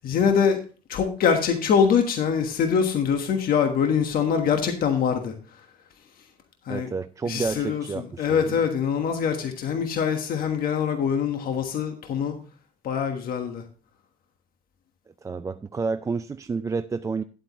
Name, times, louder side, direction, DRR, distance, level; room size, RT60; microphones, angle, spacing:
voice 1, 0.0-0.6 0.9-5.3 6.7-6.9 7.3-12.4 12.8-13.6, left 7 dB, 60° left, 1.3 m, -24 dB
voice 2, 6.7-8.6 15.2-17.2, right 4 dB, 20° right, 0.3 m, -30 dB
10.5 x 8.2 x 3.0 m
cardioid pair, 110°, 17 cm